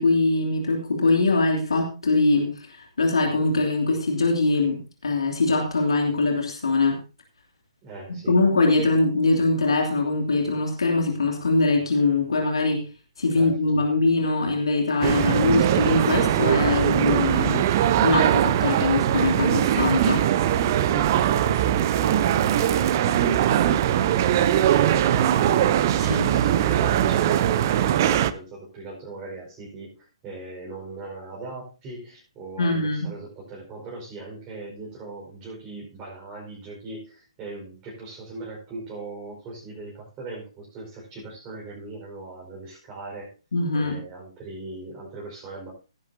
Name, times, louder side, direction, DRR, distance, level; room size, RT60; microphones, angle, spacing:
voice 1, 0.0-7.0 8.1-12.8 13.2-20.3 26.0-26.3 32.6-33.1 43.5-44.0, left 3 dB, 65° left, 1 dB, 2.8 m, -22 dB
voice 2, 7.8-8.3 13.3-13.6 20.7-25.5 26.0-43.3 43.7-45.7, right 3 dB, 20° right, -4 dB, 5.1 m, -39 dB
sound 1, 15.0-28.3, right 11 dB, 35° right, 0.7 m, -21 dB
17.5 x 10.0 x 2.8 m, 0.33 s
figure-of-eight pair, 130°, 3 cm